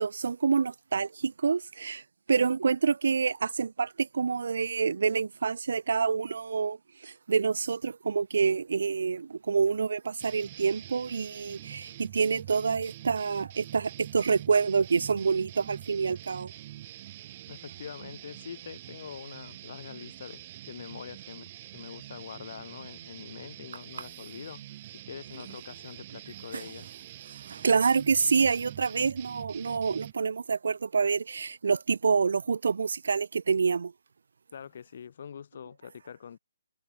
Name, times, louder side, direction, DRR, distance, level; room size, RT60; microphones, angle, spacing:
voice 1, 0.0-2.0 2.3-16.5 26.5-26.6 27.4-33.9, right 5 dB, 60° right, 0.8 m, -27 dB
sound 1, 10.2-30.1, right 14 dB, 25° right, 2.8 m, -46 dB
voice 2, 17.5-20.4 20.7-27.5 34.5-36.4, left 7 dB, 40° left, 0.6 m, -44 dB
hypercardioid pair, 175°, 0 cm